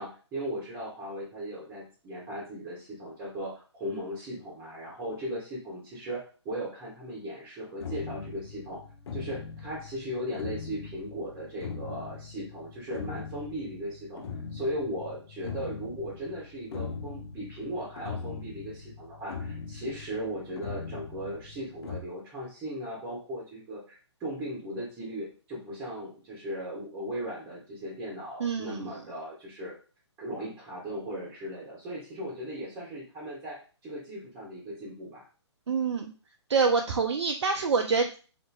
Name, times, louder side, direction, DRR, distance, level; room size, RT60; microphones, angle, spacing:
voice 1, 0.0-8.8 9.1-29.7 30.2-35.3, equal, 15° right, -6 dB, 1.1 m, -37 dB
sound 1, 7.8-22.0, left 5 dB, 65° left, 0.6 m, -41 dB
voice 2, 28.4-28.8 35.7-36.1 36.5-38.2, right 5 dB, 70° right, 3 dB, 0.4 m, -26 dB
2.8 x 2.5 x 2.3 m, 0.37 s
figure-of-eight pair, 130°, 15 cm